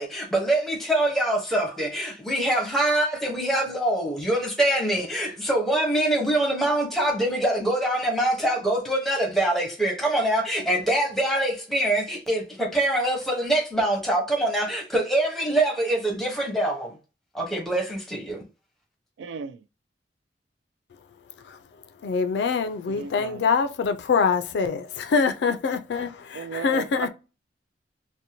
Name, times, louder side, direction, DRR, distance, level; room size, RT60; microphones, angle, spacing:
voice 1, 0.0-16.9 17.3-18.4, right 1 dB, ahead, 0.7 m, -24 dB
voice 2, 19.2-19.6 22.9-23.5 26.4-27.1, right 5 dB, 85° right, 0.3 m, -35 dB
voice 3, 22.0-26.1 26.5-27.1, left 5 dB, 70° left, 0.3 m, -24 dB
2.6 x 2.1 x 2.8 m
head